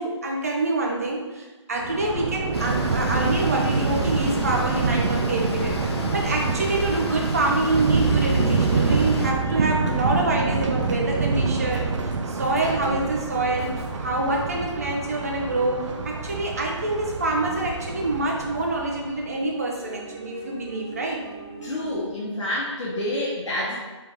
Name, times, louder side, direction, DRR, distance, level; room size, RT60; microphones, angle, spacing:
voice 1, 0.0-11.9 12.3-21.2, right 2 dB, 30° right, -1 dB, 0.6 m, -26 dB
Thunder, 1.8-19.2, right 4 dB, 80° right, 0.5 m, -26 dB
sound 1, 2.5-9.3, left 3 dB, 55° left, 0.6 m, -34 dB
sound 2, 3.1-22.1, right 2 dB, 55° right, 1.1 m, -43 dB
voice 2, 21.6-23.8, left 1 dB, 75° left, -6 dB, 1.1 m, -28 dB
3.9 x 3.3 x 3.5 m, 1.2 s
hypercardioid pair, 180°, 16 cm